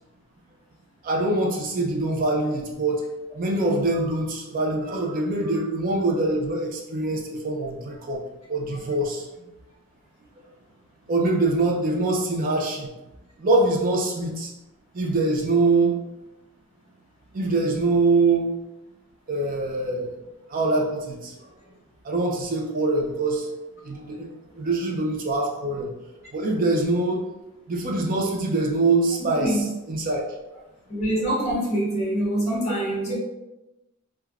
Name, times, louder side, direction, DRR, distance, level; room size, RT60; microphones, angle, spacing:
voice 1, 1.0-3.0 3.3-8.2 8.5-9.3 11.1-12.9 13.4-14.5 14.9-16.0 17.3-18.5 19.3-20.1 20.5-21.3 22.0-23.5 23.8-24.3 24.6-25.9 26.3-27.2 27.7-29.6 29.9-30.2, right 2 dB, 40° right, 0 dB, 0.5 m, -24 dB
voice 2, 29.2-29.6 30.9-33.2, right 1 dB, 30° left, -5 dB, 1.0 m, -25 dB
3.2 x 2.3 x 2.3 m, 0.98 s
head